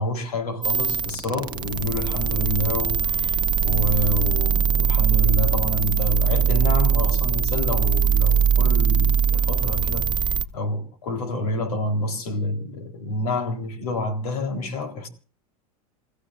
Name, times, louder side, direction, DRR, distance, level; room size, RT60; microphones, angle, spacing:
voice 1, 0.0-15.1, left 2 dB, 85° left, 3.9 m, -28 dB
sound 1, 0.6-10.5, right 7 dB, 25° right, 0.9 m, -21 dB
29.0 x 15.0 x 2.6 m
hypercardioid pair, 110°, 19 cm